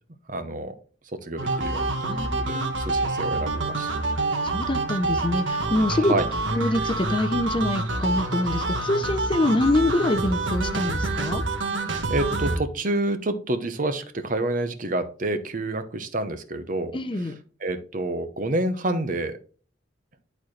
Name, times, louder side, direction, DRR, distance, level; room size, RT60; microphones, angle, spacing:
voice 1, 0.3-0.7 1.2-3.9 5.9-6.3 12.1-17.3 17.6-19.4, right 2 dB, 45° right, 9 dB, 0.9 m, -28 dB
sound 1, 1.4-12.6, right 2 dB, 90° right, 1.5 m, -27 dB
voice 2, 2.0-2.7 4.4-6.1 6.5-11.4 16.9-17.4, left 1 dB, 25° left, 9 dB, 0.6 m, -25 dB
11.0 x 4.3 x 3.2 m, 0.40 s
head